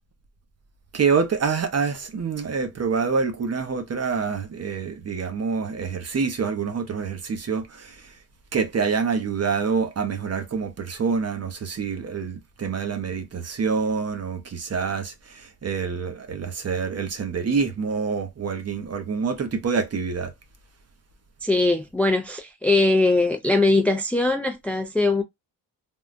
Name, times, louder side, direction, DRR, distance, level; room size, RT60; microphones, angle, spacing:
voice 1, 0.9-8.1 8.5-20.3, right 5 dB, 40° right, 0.8 m, -26 dB
voice 2, 21.4-25.2, left 2 dB, 5° left, 0.4 m, -21 dB
3.6 x 2.3 x 2.5 m
wide cardioid pair, 130°, 38 cm